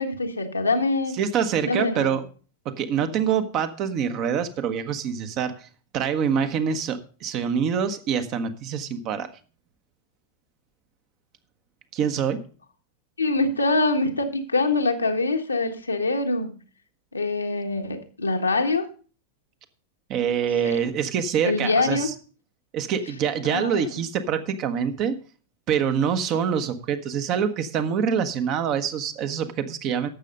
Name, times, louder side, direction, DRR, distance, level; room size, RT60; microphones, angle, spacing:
voice 1, 0.0-1.2 1.6-2.2 13.2-16.5 17.1-18.8 20.6-20.8 21.4-22.1 23.5-23.8, left 3 dB, 80° left, 3 dB, 1.4 m, -24 dB
voice 2, 1.1-2.3 2.6-5.7 5.9-9.3 11.9-12.4 20.1-22.1 22.7-25.2 25.7-30.1, right 7 dB, 40° right, 9 dB, 1.2 m, -25 dB
12.0 x 7.6 x 5.3 m, 0.38 s
figure-of-eight pair, 90°, 0 cm